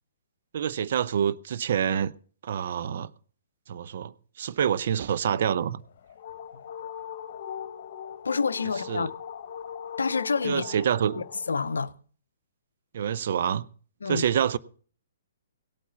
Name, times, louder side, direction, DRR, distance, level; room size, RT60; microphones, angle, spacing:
voice 1, 0.5-2.1 2.4-3.1 3.7-5.8 8.9-9.1 10.4-11.2 12.9-13.6 14.1-14.6, right 8 dB, 55° right, 0.7 m, -27 dB
sound 1, 5.8-11.9, left 8 dB, 50° left, 1.1 m, -40 dB
voice 2, 8.2-9.1 10.0-10.6 11.2-11.9 14.0-14.3, left 5 dB, 75° left, 0.6 m, -28 dB
17.0 x 8.4 x 5.6 m
figure-of-eight pair, 120°, 0 cm